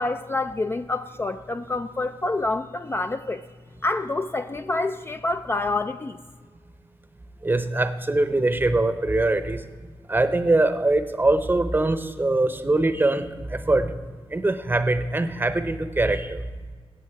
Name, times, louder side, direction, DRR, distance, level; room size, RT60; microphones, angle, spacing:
voice 1, 0.0-3.4 3.8-6.2, left 2 dB, 20° left, 8 dB, 0.3 m, -27 dB
voice 2, 7.4-9.6 10.1-13.9 14.3-16.4, right 2 dB, 20° right, 10 dB, 0.7 m, -22 dB
18.5 x 7.3 x 4.7 m, 1.5 s
wide cardioid pair, 105°, 11 cm